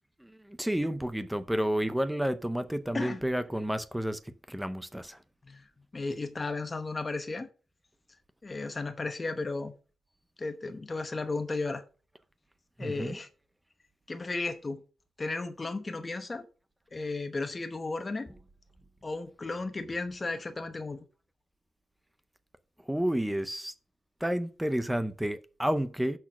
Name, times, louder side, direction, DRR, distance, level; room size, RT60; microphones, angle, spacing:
voice 1, 0.2-5.2 12.8-13.2 22.9-23.7 24.2-26.2, right 1 dB, 5° right, 0.6 m, -31 dB
voice 2, 5.9-7.5 8.4-9.7 10.4-11.8 12.8-13.3 14.1-14.8 15.2-16.5 16.9-18.3 19.0-21.1, left 3 dB, 20° left, 1.0 m, -34 dB
6.3 x 6.2 x 6.0 m
wide cardioid pair, 170°, 0 cm